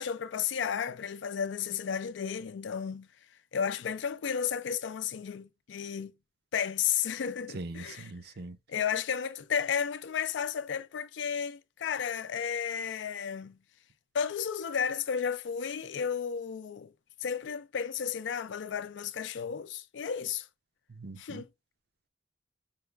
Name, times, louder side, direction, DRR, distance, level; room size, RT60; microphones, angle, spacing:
voice 1, 0.0-3.1 3.5-6.1 6.5-8.1 8.7-13.6 14.1-16.9 17.2-20.5 21.2-21.5, left 7 dB, 80° left, 0.4 m, -33 dB
voice 2, 7.5-8.6 20.9-21.4, right 2 dB, 60° right, 0.6 m, -41 dB
5.4 x 2.3 x 3.2 m
head